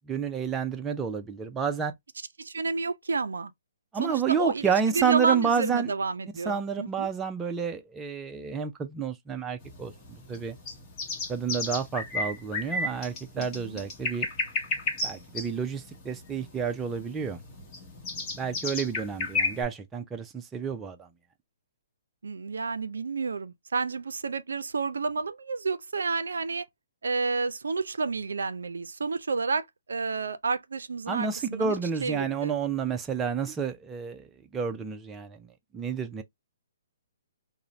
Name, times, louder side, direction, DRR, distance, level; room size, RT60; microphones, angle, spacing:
voice 1, 0.1-1.9 3.9-5.9 6.5-9.9 10.3-10.6 11.3-14.3 15.0-17.4 18.4-21.1 31.1-35.5 35.7-36.2, right 6 dB, 15° right, 0.4 m, -30 dB
voice 2, 2.4-3.5 4.0-7.1 13.4-13.8 22.2-26.7 27.0-31.8 32.0-32.5, right 4 dB, 85° right, 0.4 m, -30 dB
sound 1, 9.6-19.6, left 3 dB, 25° left, 0.9 m, -33 dB
2.5 x 2.1 x 2.9 m
hypercardioid pair, 145°, 0 cm